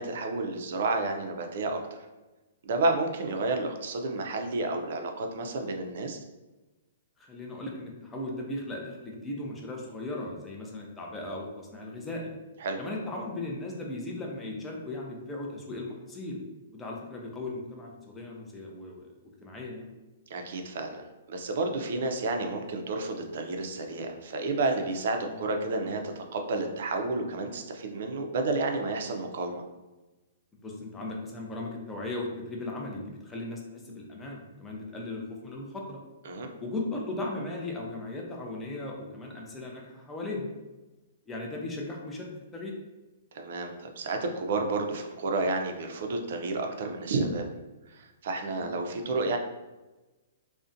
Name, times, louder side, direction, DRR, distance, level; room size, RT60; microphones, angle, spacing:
voice 1, 0.0-1.8 2.6-6.2 12.6-12.8 20.3-21.0 21.3-29.6 36.3-36.5 43.3-47.4 47.9-49.4, right 3 dB, 60° right, 4 dB, 0.4 m, -31 dB
voice 2, 7.2-12.3 12.8-16.4 16.7-19.1 19.4-19.9 25.2-25.4 30.6-36.0 36.6-40.5 41.3-42.8 48.5-48.7, left 2 dB, 10° left, -1 dB, 0.4 m, -37 dB
2.5 x 2.1 x 2.6 m, 1.1 s
hypercardioid pair, 150°, 0 cm